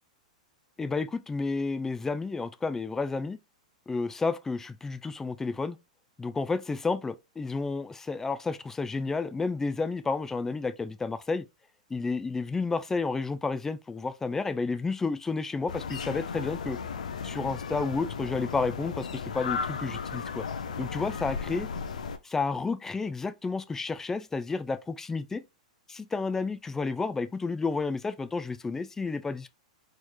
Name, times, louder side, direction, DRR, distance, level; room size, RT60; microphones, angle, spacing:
voice 1, 0.8-3.4 3.9-5.8 6.2-11.5 11.9-16.8 17.2-20.5 20.8-21.7 22.2-25.4 25.9-29.5, left 4 dB, 10° left, 0.3 m, -31 dB
sound 1, 15.7-22.2, left 6 dB, 75° left, 0.5 m, -35 dB
4.3 x 3.1 x 2.3 m
hypercardioid pair, 105°, 4 cm